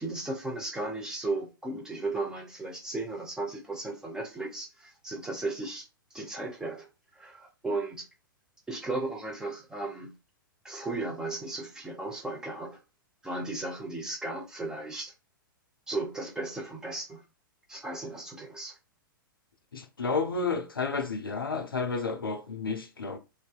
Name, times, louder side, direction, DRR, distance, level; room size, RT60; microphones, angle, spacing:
voice 1, 0.0-5.9 6.1-8.1 8.7-10.2 10.6-12.8 13.2-15.1 15.9-17.2 17.7-18.8, right 2 dB, 5° right, 0.7 m, -35 dB
voice 2, 19.7-23.2, left 4 dB, 80° left, 0.4 m, -31 dB
2.6 x 2.3 x 2.3 m
figure-of-eight pair, 105°, 12 cm